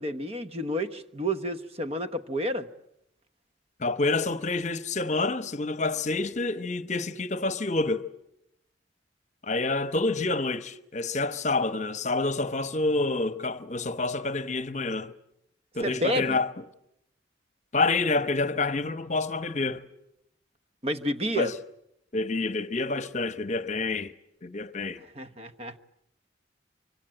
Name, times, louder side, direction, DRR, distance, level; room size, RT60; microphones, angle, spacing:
voice 1, 0.0-2.7 15.8-16.4 20.8-21.5 25.2-25.8, equal, 35° right, 1.1 m, -30 dB
voice 2, 3.8-8.0 9.4-15.1 15.7-16.5 17.7-19.8 21.3-21.5 22.1-24.1 24.4-25.0, left 3 dB, 40° left, 1.0 m, -28 dB
25.0 x 25.0 x 8.9 m
head